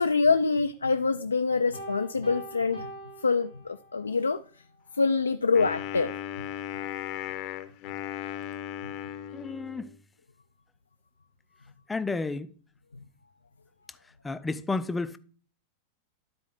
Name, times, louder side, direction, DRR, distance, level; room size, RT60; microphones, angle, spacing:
voice 1, 0.0-2.9 3.2-4.4 5.0-6.1, left 4 dB, 75° left, 0.4 m, -25 dB
Piano, 1.7-4.1, right 1 dB, 75° right, 4.0 m, -43 dB
Wind instrument woodwind instrument, 5.5-10.0, left 11 dB, 40° left, 0.8 m, -37 dB
voice 2, 9.3-9.9 11.9-12.5 14.2-15.2, left 3 dB, 10° left, 0.5 m, -31 dB
12.0 x 4.4 x 3.7 m
figure-of-eight pair, 90°, 0 cm